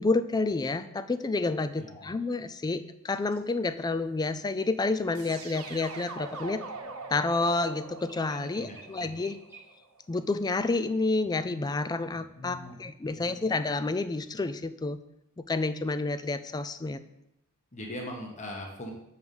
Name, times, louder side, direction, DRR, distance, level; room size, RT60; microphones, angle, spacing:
voice 1, 0.0-6.6 7.1-9.4 10.1-15.0 15.4-17.0, left 3 dB, 20° left, 12 dB, 0.3 m, -29 dB
voice 2, 1.8-2.1 8.6-9.2 12.1-12.8 13.0-13.5 17.7-18.9, left 1 dB, 35° left, 0 dB, 1.3 m, -41 dB
sound 1, 3.1-3.4 8.0-9.8, right 3 dB, 15° right, 1.0 m, -52 dB
sound 2, 5.1-10.1, right 4 dB, 80° right, 1.0 m, -43 dB
7.8 x 4.8 x 5.3 m, 0.84 s
head